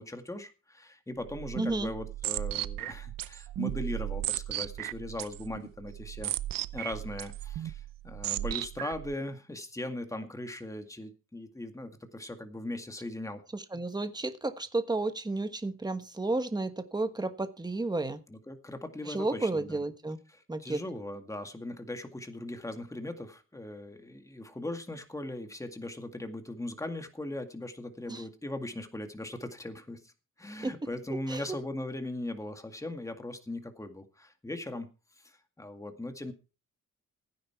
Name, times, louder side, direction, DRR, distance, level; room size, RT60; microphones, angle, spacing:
voice 1, 0.0-6.3 6.7-13.4 13.7-13.8 18.3-19.8 20.3-30.1 30.4-34.9 35.2-36.3, left 1 dB, 10° left, 6 dB, 2.0 m, -39 dB
sound 1, 1.2-9.1, right 14 dB, 90° right, 0.8 m, -36 dB
voice 2, 1.6-1.9 13.5-18.2 19.1-20.2 20.5-20.8 28.1-28.2 30.6-30.7 31.3-31.4, right 2 dB, 10° right, 10 dB, 1.4 m, -32 dB
16.0 x 9.7 x 4.6 m, 0.32 s
cardioid pair, 115°, 32 cm